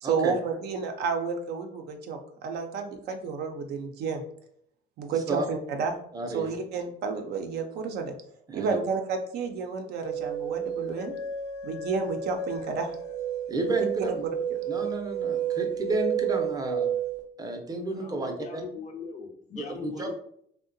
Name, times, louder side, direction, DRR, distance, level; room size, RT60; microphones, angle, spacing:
voice 1, 0.0-4.2 5.0-5.9 6.3-8.1 8.5-11.1 11.6-12.9 13.8-13.9 14.5-14.6, right 5 dB, 75° right, 5 dB, 0.5 m, -31 dB
voice 2, 6.1-6.6 8.5-8.8 13.5-14.3 14.7-16.9 17.4-18.6 19.6-20.1, right 2 dB, 20° right, 3 dB, 0.5 m, -32 dB
sound 1, 10.0-17.2, right 8 dB, 90° left, 0.6 m, -31 dB
voice 3, 18.0-20.1, left 5 dB, 45° left, 4 dB, 0.5 m, -40 dB
2.7 x 2.1 x 2.5 m, 0.66 s
cardioid pair, 110°, 17 cm